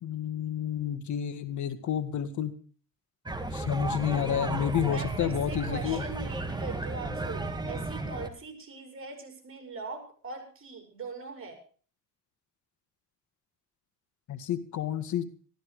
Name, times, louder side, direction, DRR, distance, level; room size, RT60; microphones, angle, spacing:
voice 1, 0.0-2.5 3.5-6.0 14.3-15.3, left 9 dB, 70° left, 11 dB, 1.8 m, -30 dB
sound 1, 3.3-8.3, right 2 dB, 15° right, 2.0 m, -34 dB
voice 2, 4.8-11.6, right 3 dB, 45° right, 5 dB, 5.9 m, -41 dB
14.5 x 13.0 x 4.8 m, 0.40 s
cardioid pair, 90°, 30 cm